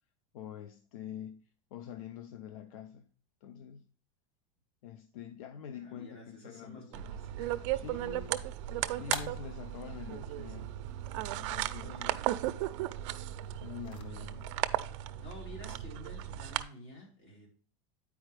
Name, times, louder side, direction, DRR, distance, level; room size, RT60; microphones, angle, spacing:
voice 1, 0.3-1.4 1.7-3.1 3.4-3.9 4.8-7.1 7.7-8.5 8.9-10.7 11.3-12.3 13.6-14.5, left 9 dB, 85° left, 0.6 m, -46 dB
voice 2, 5.7-7.7 8.8-8.9 11.9-12.2 15.0-17.5, left 1 dB, 50° left, 3.5 m, -51 dB
sound 1, 6.9-16.6, right 14 dB, 60° right, 0.5 m, -36 dB
sound 2, 7.7-14.0, left 5 dB, 30° left, 0.7 m, -48 dB
8.9 x 4.8 x 3.3 m
supercardioid pair, 165°, 17 cm